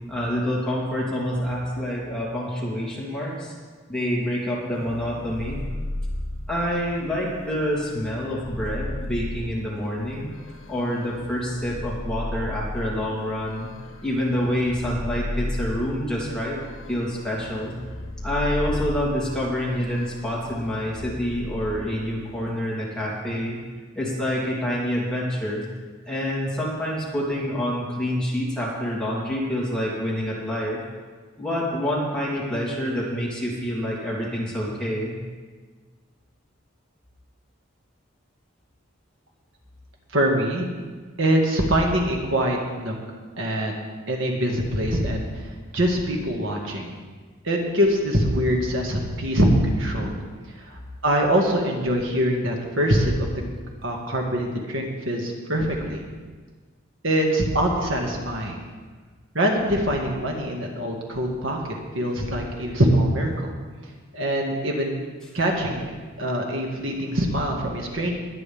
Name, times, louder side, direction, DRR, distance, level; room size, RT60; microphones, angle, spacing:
voice 1, 0.1-3.5 3.9-5.6 6.5-10.3 10.7-13.7 14.0-16.6 16.9-17.7 18.2-23.6 23.9-25.6 26.1-30.8 31.4-35.1, equal, 5° left, -6 dB, 3.2 m, -27 dB
sound 1, 4.7-22.6, left 1 dB, 80° left, 1.1 m, -35 dB
voice 2, 40.1-40.7 41.2-43.0 43.4-43.7 44.1-46.9 47.4-50.2 50.6-53.3 53.8-56.0 57.0-58.6 59.3-61.6 61.9-63.5 64.1-65.0 65.3-65.9 66.2-68.2, equal, 70° right, 0 dB, 1.9 m, -23 dB
21.5 x 9.6 x 3.6 m, 1.4 s
head